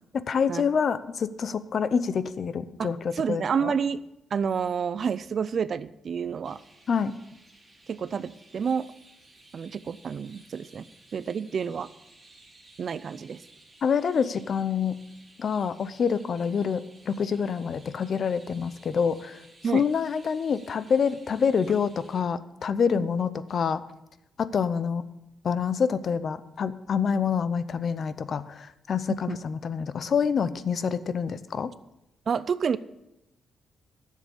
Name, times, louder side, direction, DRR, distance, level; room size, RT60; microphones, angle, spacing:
voice 1, 0.1-3.7 6.9-7.1 13.8-15.0 15.4-19.4 19.7-23.8 24.4-25.0 25.4-31.7, left 6 dB, 50° left, 15 dB, 0.6 m, -27 dB
voice 2, 2.8-4.0 4.3-6.6 7.9-8.8 9.5-10.9 11.1-11.9 12.8-13.4 19.6-19.8 22.9-23.1 29.3-29.4 32.3-32.8, right 6 dB, 50° right, 16 dB, 0.4 m, -29 dB
Chirp tweet, 6.4-22.2, right 2 dB, 10° right, 3.0 m, -56 dB
11.0 x 7.4 x 7.0 m, 0.88 s
cardioid pair, 130°, 0 cm